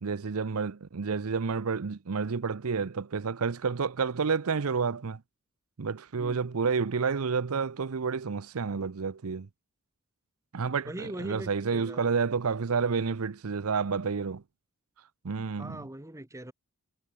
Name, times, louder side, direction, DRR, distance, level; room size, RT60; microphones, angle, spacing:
voice 1, 0.0-5.2 5.8-9.5 10.5-14.4 15.2-15.8, right 5 dB, 80° right, 0.7 m, -30 dB
voice 2, 6.2-6.5 10.9-12.1 15.5-16.5, right 1 dB, 15° right, 1.5 m, -41 dB
head